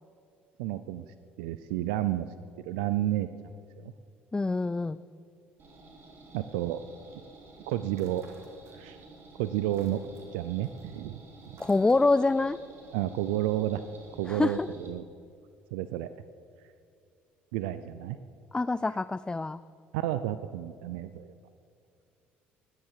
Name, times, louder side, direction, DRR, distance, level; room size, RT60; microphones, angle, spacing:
voice 1, 0.6-1.1 1.4-2.3 2.6-3.9 6.3-6.8 7.7-8.2 8.7-9.0 9.4-10.0 10.3-11.6 12.9-13.8 14.2-15.0 15.7-16.1 17.5-18.2 19.9-21.3, right 13 dB, 85° right, 13 dB, 0.5 m, -31 dB
voice 2, 4.3-5.0 11.6-12.6 14.3-14.7 18.5-19.6, left 3 dB, 15° left, 15 dB, 0.4 m, -26 dB
sound 1, 5.6-14.9, right 3 dB, 45° right, 3.5 m, -52 dB
sound 2, 7.9-9.1 9.4-12.4, right 4 dB, 65° right, 2.5 m, -57 dB
20.0 x 10.0 x 4.8 m, 2.5 s
supercardioid pair, 70°, 5 cm